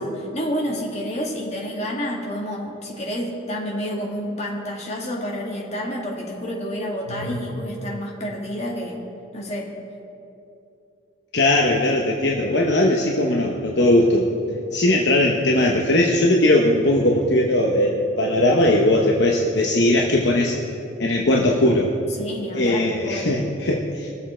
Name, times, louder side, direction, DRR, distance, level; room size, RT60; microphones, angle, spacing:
voice 1, 0.0-9.0 9.3-9.7 22.2-23.4, equal, 35° left, -2 dB, 1.9 m, -29 dB
voice 2, 11.3-14.3 14.7-20.6 21.0-21.9 22.5-24.1, left 1 dB, 55° left, -1 dB, 0.9 m, -19 dB
21.5 x 7.2 x 4.4 m, 2.7 s
head